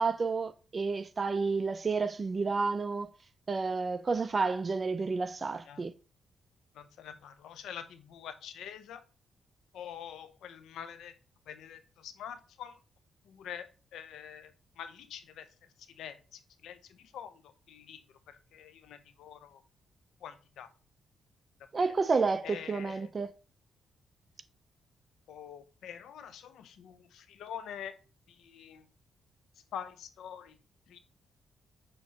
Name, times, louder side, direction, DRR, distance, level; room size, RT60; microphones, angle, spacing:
voice 1, 0.0-3.1 3.5-5.9 21.7-23.3, right 4 dB, 35° right, 0.4 m, -30 dB
voice 2, 6.7-9.0 9.7-11.1 11.5-12.8 13.3-14.5 14.8-15.5 15.9-18.0 18.3-19.6 20.2-20.7 21.8-21.9 22.4-23.1 25.3-27.9 28.3-28.8 29.7-30.6 30.9-31.0, left 9 dB, 85° left, 0.5 m, -45 dB
6.3 x 3.0 x 2.7 m
cardioid pair, 95°, 0 cm